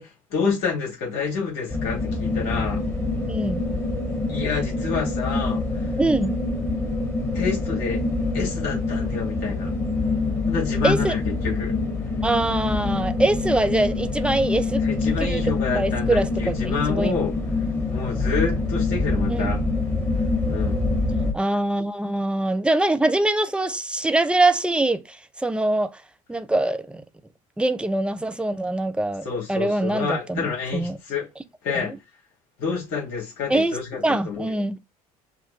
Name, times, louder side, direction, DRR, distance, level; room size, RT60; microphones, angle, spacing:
voice 1, 0.0-2.8 4.3-5.9 7.3-8.0 8.3-9.7 10.5-11.8 14.8-17.3 17.9-19.6 20.5-20.9 29.2-31.3 31.6-31.9 32.6-34.6, left 5 dB, 60° left, 2.7 m, -28 dB
sound 1, 1.7-21.3, left 3 dB, 15° left, 1.8 m, -25 dB
voice 2, 3.2-3.6 6.0-6.3 10.8-11.1 12.2-14.8 15.2-15.4 15.7-17.2 19.3-19.6 21.3-26.0 26.3-27.0 27.6-31.0 31.7-32.0 33.5-34.8, right 2 dB, 5° right, 0.6 m, -23 dB
5.6 x 2.5 x 3.3 m
figure-of-eight pair, 60°, 19 cm